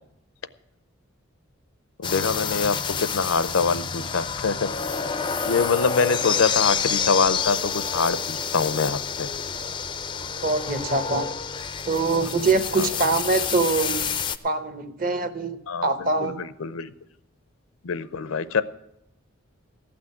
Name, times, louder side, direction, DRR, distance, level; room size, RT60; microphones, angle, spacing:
voice 1, 2.0-4.7 5.4-9.3 12.8-12.9 15.7-16.9 17.8-18.6, left 5 dB, 75° left, 15 dB, 0.6 m, -24 dB
sound 1, 2.0-14.4, left 6 dB, 20° left, 0.4 m, -28 dB
voice 2, 10.4-11.3 11.9-14.0 14.4-16.4, right 3 dB, 40° right, 10 dB, 0.9 m, -24 dB
15.0 x 6.1 x 9.7 m, 0.81 s
head